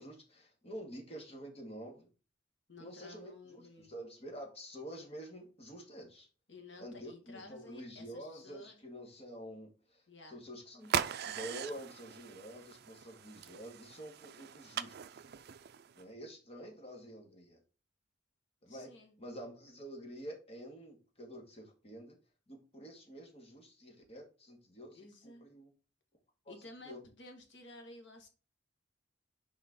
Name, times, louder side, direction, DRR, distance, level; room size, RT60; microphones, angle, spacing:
voice 1, 0.0-2.1 2.8-6.3 6.8-10.0 10.3-11.0 11.3-15.2 16.0-17.6 18.6-18.9 19.2-22.2 22.5-25.7 26.5-26.6 26.8-27.0, equal, 35° left, 2 dB, 2.2 m, -48 dB
voice 2, 2.7-3.9 6.5-8.8 10.1-10.4 18.7-19.1 24.9-25.5 26.5-28.3, left 2 dB, 70° left, 4 dB, 1.9 m, -53 dB
sound 1, 10.8-16.0, right 8 dB, 55° right, 0.4 m, -40 dB
6.8 x 4.9 x 3.7 m, 0.33 s
head